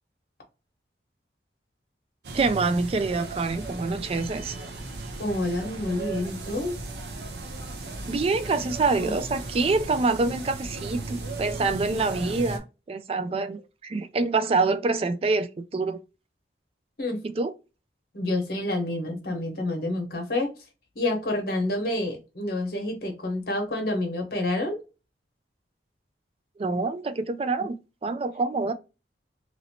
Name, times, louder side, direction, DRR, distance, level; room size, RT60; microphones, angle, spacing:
sound 1, 2.2-12.6, right 2 dB, 65° right, 0.6 m, -36 dB
voice 1, 2.3-4.6 8.1-16.0 17.2-17.5 26.6-28.7, right 3 dB, 35° right, 0.3 m, -26 dB
voice 2, 5.2-6.7 9.0-9.1 17.0-17.2 18.1-20.5 20.9-24.8, left 1 dB, 60° left, 1.1 m, -28 dB
3.0 x 2.7 x 2.8 m
head